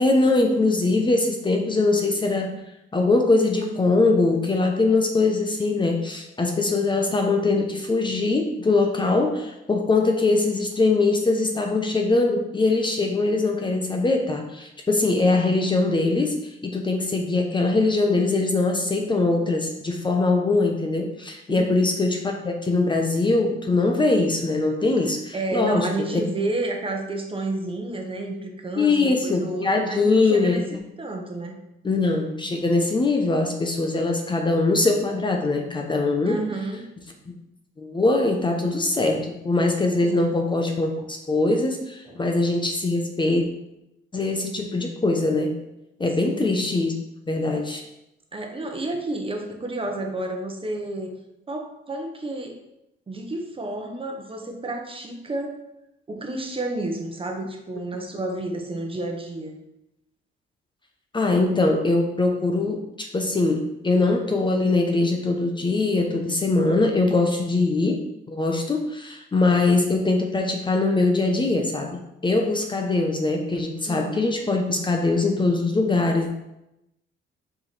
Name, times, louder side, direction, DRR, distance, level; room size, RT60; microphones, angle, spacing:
voice 1, 0.0-2.6 2.9-16.4 16.6-25.9 26.1-26.2 28.8-30.6 31.8-36.4 37.8-43.5 44.1-45.5 46.0-46.9 47.3-47.8 61.1-68.0 68.3-76.3, left 3 dB, 25° left, 3 dB, 0.9 m, -22 dB
voice 2, 25.3-30.6 31.0-31.6 36.2-36.9 40.0-40.4 42.1-42.2 46.2-46.5 48.3-51.2 51.5-52.6 53.1-55.6 56.1-59.5 73.9-74.2, right 2 dB, 25° right, 3 dB, 1.1 m, -30 dB
5.0 x 4.8 x 4.2 m, 0.88 s
cardioid pair, 90°, 20 cm